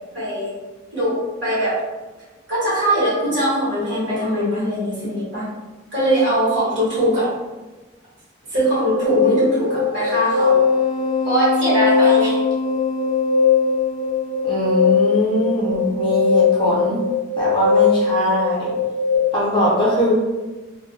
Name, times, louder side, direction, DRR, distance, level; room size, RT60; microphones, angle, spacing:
voice 1, 0.1-0.5 0.9-1.1 1.4-1.8 2.5-5.4 5.9-7.3 8.5-10.6 11.2-12.4, right 1 dB, 70° right, -9 dB, 1.2 m, -21 dB
sound 1, 9.0-19.2, left 5 dB, 35° right, 0.6 m, -19 dB
voice 2, 14.4-17.0 17.4-18.7 19.3-20.1, equal, 25° left, -6 dB, 0.6 m, -21 dB
2.3 x 2.2 x 2.6 m, 1.2 s
head